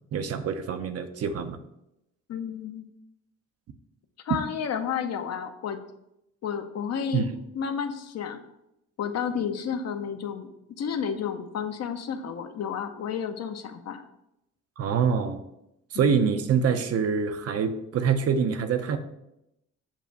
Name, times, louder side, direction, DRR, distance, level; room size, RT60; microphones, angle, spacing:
voice 1, 0.1-1.6 7.1-7.3 14.8-15.4 15.9-19.0, right 6 dB, 55° right, 9 dB, 0.6 m, -25 dB
voice 2, 2.3-2.8 4.2-5.8 6.4-7.3 7.5-8.4 9.0-10.5 10.8-14.0 15.9-16.1, left 7 dB, 60° left, 7 dB, 0.7 m, -31 dB
7.3 x 2.5 x 5.2 m, 0.85 s
cardioid pair, 90°, 30 cm